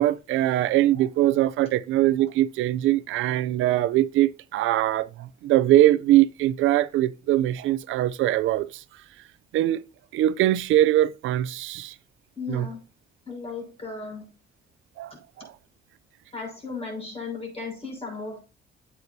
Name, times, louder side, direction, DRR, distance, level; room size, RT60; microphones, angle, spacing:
voice 1, 0.0-8.8 9.5-9.8 10.1-11.9 12.5-12.7 15.0-15.5, right 14 dB, 85° right, 0.5 m, -22 dB
voice 2, 12.4-12.8 13.3-14.2 16.3-18.4, left 4 dB, 30° left, 5.6 m, -35 dB
8.7 x 8.3 x 2.7 m
cardioid pair, 90°, 20 cm